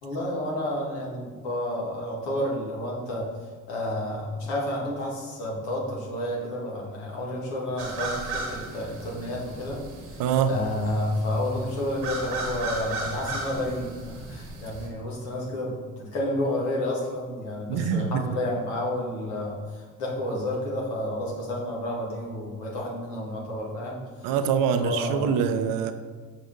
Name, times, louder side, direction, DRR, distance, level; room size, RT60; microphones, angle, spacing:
voice 1, 0.0-3.3 3.7-9.8 10.1-10.2 10.5-13.9 14.3-24.0 24.7-25.3, left 1 dB, 65° left, -4 dB, 2.1 m, -30 dB
sound 1, 7.8-14.9, right 2 dB, 75° right, 1.2 m, -36 dB
voice 2, 10.2-10.6 17.7-18.2 24.2-25.9, right 7 dB, 55° right, 9 dB, 0.6 m, -24 dB
6.8 x 5.0 x 3.9 m, 1.5 s
figure-of-eight pair, 45°, 40 cm